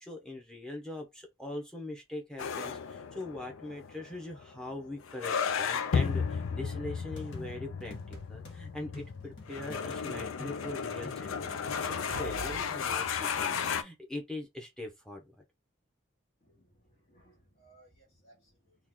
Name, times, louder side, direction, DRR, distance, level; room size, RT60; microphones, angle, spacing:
voice 1, 0.0-15.4, left 2 dB, 5° left, 0.8 m, -42 dB
sound 1, 2.4-13.8, left 6 dB, 80° left, 0.4 m, -34 dB
sound 2, 7.2-8.6 8.9-12.1, left 2 dB, 65° left, 1.0 m, -48 dB
sound 3, 11.8-12.7 13.1-13.2, right 5 dB, 90° right, 0.5 m, -43 dB
voice 2, 16.4-18.8, right 1 dB, 40° left, 1.3 m, -63 dB
3.1 x 2.4 x 3.6 m
head